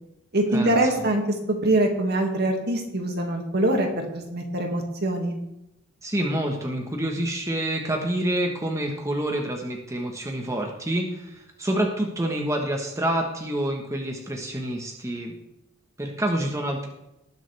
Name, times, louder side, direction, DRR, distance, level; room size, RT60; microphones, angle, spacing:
voice 1, 0.3-1.2 1.5-5.3, right 1 dB, 55° right, 2 dB, 2.2 m, -24 dB
voice 2, 6.0-15.3 16.0-16.9, right 1 dB, 15° right, 1 dB, 1.4 m, -27 dB
19.0 x 7.3 x 3.5 m, 0.88 s
head